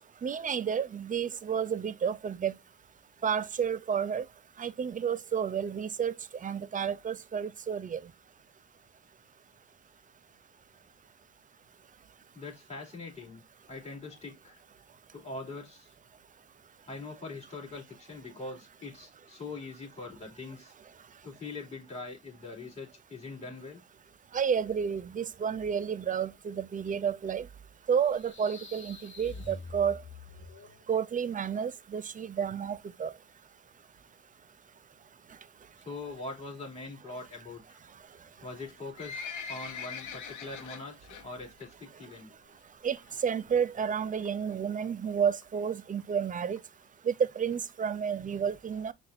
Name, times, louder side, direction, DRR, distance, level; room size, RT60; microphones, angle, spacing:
voice 1, 0.2-2.5 3.2-4.2 4.6-6.1 6.4-8.0 24.3-27.4 27.9-30.0 30.9-33.1 42.8-43.0 43.2-46.6 47.1-48.9, right 7 dB, 30° right, 0.4 m, -31 dB
voice 2, 12.3-14.6 15.1-15.9 16.9-20.7 21.2-23.8 35.8-37.8 38.4-39.2 39.5-42.3, left 3 dB, 20° left, 2.8 m, -42 dB
sound 1, 28.0-30.8, left 3 dB, 40° left, 2.1 m, -46 dB
Livestock farm animals working animals, 38.6-41.2 41.6-41.9 42.2-42.3 43.0-43.1 43.3-43.4 43.6-43.7 44.2-44.5 45.1-45.2 45.4-45.5 45.7-45.8 46.0-46.1 46.6-46.7 47.1-47.2 47.7-47.8, left 6 dB, 75° left, 0.9 m, -41 dB
5.8 x 2.5 x 2.5 m
cardioid pair, 90°, 30 cm